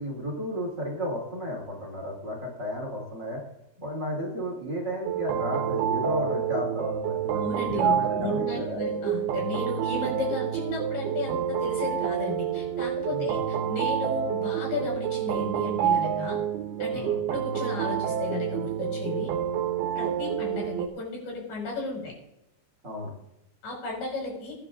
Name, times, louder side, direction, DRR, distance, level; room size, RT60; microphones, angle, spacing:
voice 1, 0.0-3.4 3.8-8.8 13.1-13.3 16.9-17.2 22.8-23.1, equal, 30° right, -3 dB, 3.0 m, -33 dB
sound 1, 5.0-20.9, right 9 dB, 80° right, 2.8 m, -28 dB
voice 2, 7.4-16.4 16.8-17.0 17.3-19.3 19.9-22.1 23.6-24.6, left 3 dB, 60° left, -1 dB, 6.9 m, -34 dB
23.0 x 9.8 x 2.5 m, 0.87 s
omnidirectional pair, 4.6 m